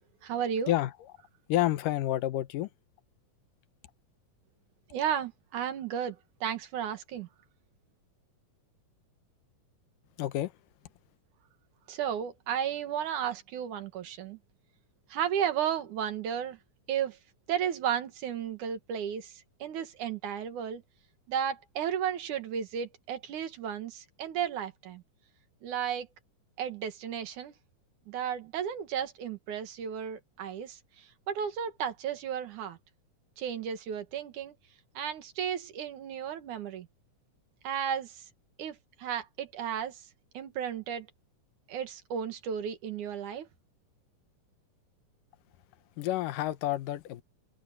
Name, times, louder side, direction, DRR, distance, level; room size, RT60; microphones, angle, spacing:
voice 1, 0.2-0.7 4.9-7.3 11.9-14.4 15.1-16.6 16.9-17.2 17.5-20.8 21.3-25.0 25.6-26.1 26.6-27.5 28.1-32.8 33.4-34.5 34.9-36.9 37.6-38.3 38.6-40.0 40.3-41.1 41.7-43.5, right 8 dB, 70° right, 3.0 m, -34 dB
voice 2, 1.5-2.7 10.2-10.5 46.0-47.2, left 14 dB, 85° left, 2.6 m, -29 dB
omnidirectional pair, 3.7 m